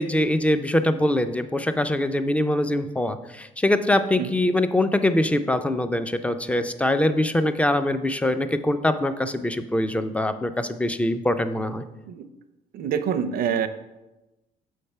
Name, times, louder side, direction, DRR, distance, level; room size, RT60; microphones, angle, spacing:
voice 1, 0.0-11.8, left 1 dB, 10° left, 10 dB, 0.3 m, -23 dB
voice 2, 12.7-13.7, right 8 dB, 60° right, 11 dB, 0.5 m, -26 dB
6.4 x 3.3 x 5.4 m, 1.0 s
cardioid pair, 110°, 17 cm